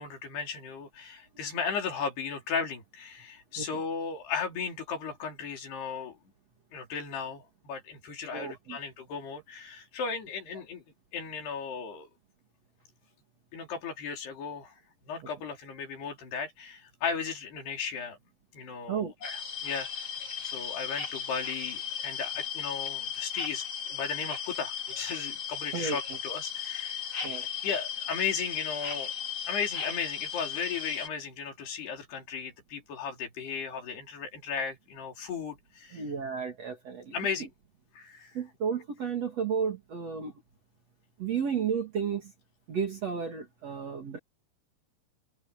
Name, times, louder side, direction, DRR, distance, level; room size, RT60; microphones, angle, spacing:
voice 1, 0.0-6.2 6.7-10.8 11.1-12.1 13.5-14.8 15.1-18.2 18.5-20.1 20.4-27.1 27.6-29.1 29.5-36.0 37.1-37.5 37.9-38.3, left 6 dB, 80° left, 6.1 m, -36 dB
voice 2, 8.3-8.8 15.2-15.3 18.9-19.1 25.7-26.2 27.2-27.5 35.9-37.2 38.3-40.3 41.2-42.3 42.7-44.2, right 6 dB, 45° right, 3.1 m, -32 dB
sound 1, 19.2-31.1, left 8 dB, 35° left, 6.4 m, -36 dB
omnidirectional pair, 4.7 m